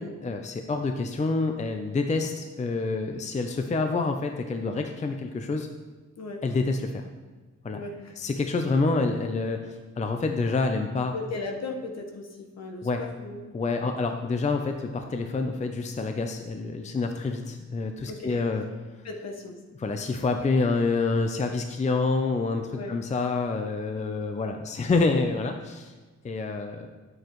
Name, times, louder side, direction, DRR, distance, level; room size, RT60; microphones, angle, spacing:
voice 1, 0.0-5.7 6.4-7.0 7.6-7.8 8.2-11.1 12.8-13.0 13.5-18.6 19.8-25.9 26.2-26.9, left 3 dB, 25° left, 5 dB, 0.5 m, -27 dB
voice 2, 7.7-8.1 8.6-8.7 11.1-13.4 13.8-13.9 18.1-18.4 19.0-19.6 22.8-22.9, left 3 dB, 60° left, 2 dB, 1.2 m, -37 dB
10.0 x 7.8 x 3.0 m, 1.3 s
wide cardioid pair, 140°, 30 cm